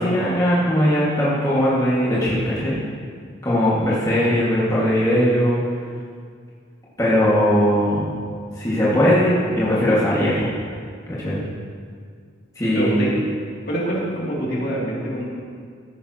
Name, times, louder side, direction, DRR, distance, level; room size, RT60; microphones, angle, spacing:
voice 1, 0.0-2.8 3.4-5.6 7.0-8.1 8.6-10.5 11.1-11.4 12.6-13.2, equal, 15° left, -9 dB, 1.9 m, -19 dB
voice 2, 12.7-13.1 13.6-15.3, right 1 dB, 50° left, -5 dB, 2.7 m, -25 dB
14.5 x 11.0 x 2.9 m, 2.1 s
head